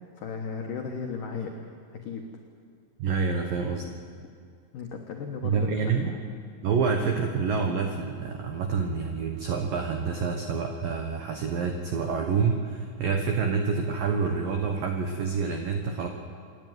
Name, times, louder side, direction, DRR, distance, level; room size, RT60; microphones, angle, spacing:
voice 1, 0.2-1.5 2.0-2.3 4.7-5.8, left 5 dB, 85° left, 2 dB, 1.8 m, -35 dB
voice 2, 3.0-3.9 5.4-6.2 6.6-16.1, right 5 dB, 90° right, 4 dB, 1.9 m, -27 dB
27.5 x 11.0 x 9.4 m, 2.3 s
omnidirectional pair, 5.9 m